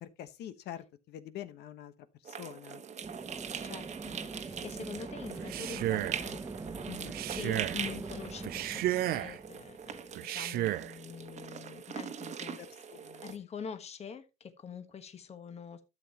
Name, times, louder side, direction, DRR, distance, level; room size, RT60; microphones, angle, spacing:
voice 1, 0.0-1.9 2.2-2.8 6.9-7.1 12.6-13.2, left 11 dB, 75° left, 1.2 m, -45 dB
sound 1, 2.2-13.4, right 7 dB, 45° right, 1.2 m, -42 dB
sound 2, 3.0-10.5, right 3 dB, 20° right, 1.0 m, -43 dB
voice 2, 3.6-6.4 7.3-12.6 13.2-15.8, left 6 dB, 40° left, 1.3 m, -45 dB
Male speech man speaking, 5.3-6.3 7.0-7.8 8.4-9.4 10.1-10.9, right 14 dB, 65° right, 0.4 m, -33 dB
12.0 x 7.5 x 2.9 m
cardioid pair, 110°, 17 cm